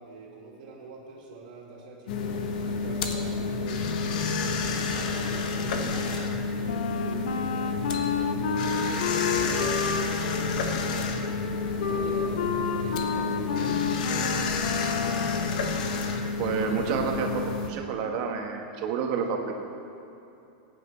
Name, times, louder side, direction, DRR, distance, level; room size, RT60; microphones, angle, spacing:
voice 1, 0.0-3.9 4.4-11.3 11.8-15.1, right 3 dB, 80° right, -5 dB, 2.4 m, -43 dB
sound 1, 2.1-17.7, left 4 dB, 65° left, 1.2 m, -29 dB
Wind instrument woodwind instrument, 6.7-15.5, left 6 dB, 90° left, 0.8 m, -31 dB
voice 2, 16.4-19.7, right 6 dB, 50° right, 2 dB, 1.5 m, -29 dB
20.5 x 9.4 x 3.3 m, 2.7 s
supercardioid pair, 155°, 5 cm